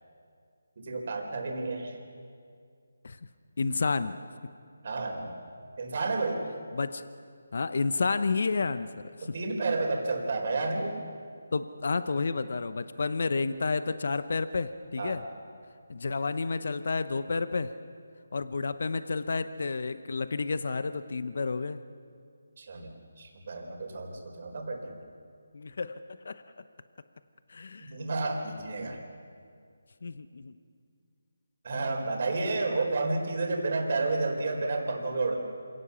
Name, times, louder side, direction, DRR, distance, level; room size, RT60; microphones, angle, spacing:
voice 1, 0.8-2.0 4.8-5.3 5.8-6.4 9.2-10.9 15.0-15.2 22.6-22.9 23.2-24.9 27.8-29.0 31.6-35.4, right 3 dB, 50° right, 2 dB, 4.4 m, -31 dB
voice 2, 3.6-4.2 6.7-7.0 7.5-9.3 11.5-15.2 15.9-17.7 18.3-21.8 25.5-26.0 26.2-26.4 27.5-27.9 28.8-29.0 30.0-30.5, left 4 dB, 60° left, 12 dB, 0.8 m, -30 dB
27.0 x 17.5 x 7.0 m, 2.3 s
figure-of-eight pair, 160°, 0 cm